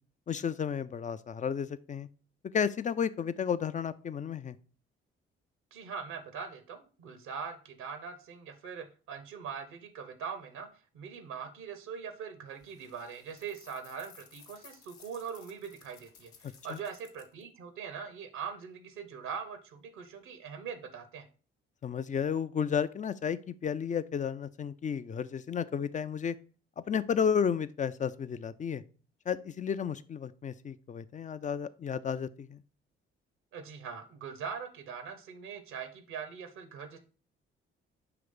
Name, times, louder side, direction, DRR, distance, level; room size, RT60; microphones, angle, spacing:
voice 1, 0.3-2.1 2.5-4.6 16.7-16.8 21.8-26.4 26.9-28.8 29.3-32.6, left 7 dB, 25° left, 15 dB, 0.4 m, -32 dB
voice 2, 5.7-10.7 10.9-21.3 33.5-37.0, right 6 dB, 65° right, 9 dB, 0.9 m, -42 dB
sound 1, 12.5-17.4, left 7 dB, 60° left, 0.9 m, -58 dB
5.8 x 3.1 x 5.2 m, 0.39 s
figure-of-eight pair, 45°, 31 cm